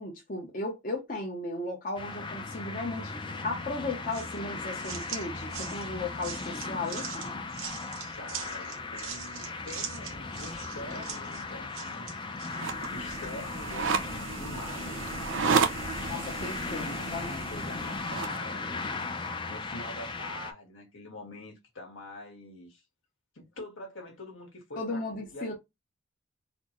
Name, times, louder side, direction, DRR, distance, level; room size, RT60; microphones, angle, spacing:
voice 1, 0.0-3.1 3.4-7.4 16.1-17.5 24.8-25.5, left 2 dB, 40° left, 0.8 m, -36 dB
sound 1, 2.0-20.5, left 3 dB, 25° left, 0.4 m, -37 dB
sound 2, 4.1-13.3, right 7 dB, 90° right, 0.9 m, -42 dB
voice 2, 8.1-12.1 12.9-14.9 15.5-15.8 16.7-19.1 19.5-22.8 23.3-25.5, left 1 dB, 75° left, 1.5 m, -45 dB
sound 3, 12.5-18.4, right 5 dB, 70° right, 0.5 m, -32 dB
4.2 x 2.0 x 3.0 m
head